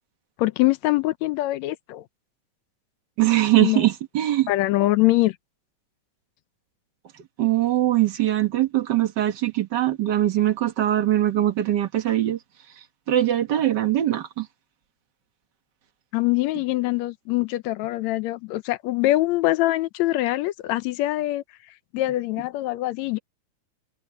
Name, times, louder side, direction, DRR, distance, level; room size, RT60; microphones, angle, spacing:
voice 1, 0.4-2.0 3.6-3.8 4.5-5.3 16.1-21.4 21.9-23.2, left 17 dB, 75° left, 1.8 m, -23 dB
voice 2, 3.2-4.5 7.4-12.4 13.1-14.5, right 13 dB, 50° right, 1.4 m, -21 dB
omnidirectional pair, 3.5 m